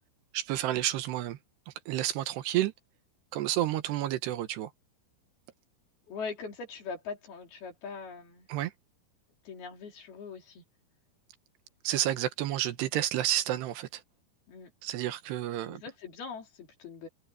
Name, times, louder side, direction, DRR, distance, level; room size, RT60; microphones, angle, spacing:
voice 1, 0.3-1.4 1.7-2.7 3.3-4.7 8.5-8.7 11.8-14.0 14.8-15.8, right 13 dB, 85° right, 3.4 m, -30 dB
voice 2, 6.1-8.5 9.5-10.6 14.5-14.7 15.7-17.1, left 5 dB, 70° left, 5.7 m, -41 dB
omnidirectional pair, 4.6 m